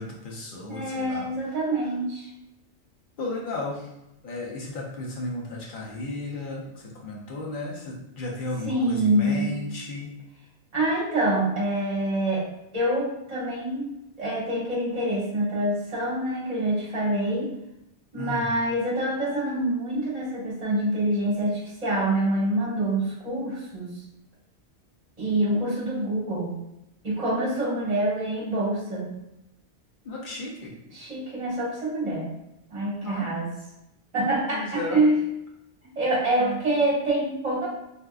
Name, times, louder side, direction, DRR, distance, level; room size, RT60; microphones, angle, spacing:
voice 1, 0.0-1.3 3.2-3.9 4.2-10.2 18.1-18.5 30.0-30.7 33.0-33.3 34.5-35.0 36.4-36.6, left 2 dB, 55° left, -2 dB, 0.8 m, -34 dB
voice 2, 0.7-2.3 8.6-9.5 10.7-12.4 12.7-13.8 14.2-17.5 18.1-23.9 25.2-26.5 27.0-29.1 30.9-32.3 32.7-33.5 34.1-35.2 36.0-37.7, right 1 dB, 40° right, -5 dB, 1.1 m, -26 dB
3.5 x 2.7 x 2.3 m, 0.87 s
omnidirectional pair, 1.1 m